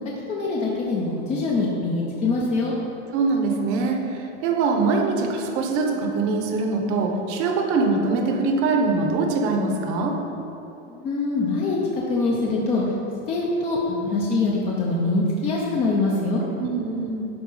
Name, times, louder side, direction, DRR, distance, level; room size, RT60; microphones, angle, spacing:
voice 1, 0.3-2.7 10.9-11.8 12.1-12.8 13.3-16.4, left 3 dB, 15° left, -3 dB, 0.6 m, -24 dB
voice 2, 3.1-4.0 4.4-10.1 16.6-17.3, right 3 dB, 35° right, 2 dB, 0.9 m, -23 dB
11.5 x 4.2 x 5.5 m, 3.0 s
supercardioid pair, 170°, 38 cm